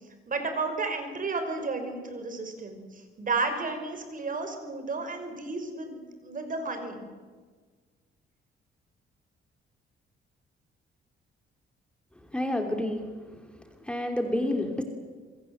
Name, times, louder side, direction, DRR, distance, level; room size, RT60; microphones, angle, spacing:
voice 1, 0.3-2.8 3.2-7.1, right 3 dB, 40° right, 6 dB, 5.6 m, -32 dB
voice 2, 12.3-13.1 13.8-14.8, left 1 dB, 5° left, 4 dB, 3.0 m, -28 dB
27.0 x 23.0 x 7.9 m, 1.5 s
cardioid pair, 105°, 20 cm